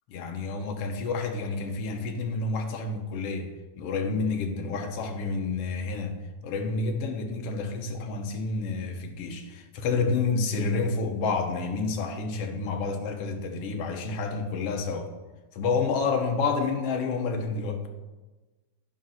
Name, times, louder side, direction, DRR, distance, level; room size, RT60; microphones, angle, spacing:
voice 1, 0.1-15.1 15.5-17.9, left 4 dB, 65° left, 4 dB, 1.8 m, -29 dB
10.5 x 6.2 x 5.7 m, 1.2 s
omnidirectional pair, 3.4 m